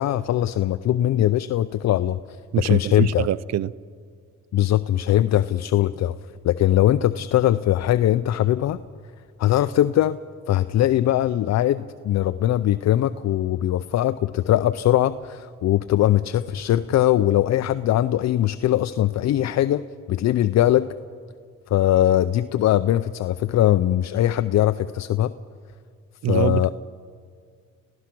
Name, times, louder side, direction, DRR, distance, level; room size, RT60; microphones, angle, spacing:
voice 1, 0.0-2.4 2.6-3.3 4.5-6.2 6.4-8.8 9.4-10.2 10.5-19.8 20.1-20.9 21.7-25.3 26.3-26.7, left 13 dB, 60° left, 0.6 m, -21 dB
voice 2, 2.5-3.7 26.2-26.7, right 11 dB, 60° right, 0.5 m, -24 dB
29.0 x 15.5 x 6.1 m
cardioid pair, 90°, 30 cm